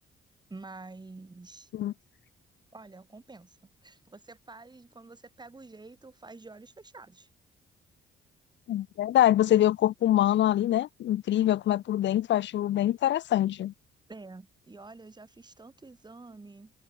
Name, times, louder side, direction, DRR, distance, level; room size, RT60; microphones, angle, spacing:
voice 1, 0.5-1.7 2.7-7.3 14.1-16.7, right 3 dB, 20° right, 6.8 m, -48 dB
voice 2, 8.7-13.7, left 12 dB, 65° left, 0.8 m, -24 dB
cardioid pair, 90°, 20 cm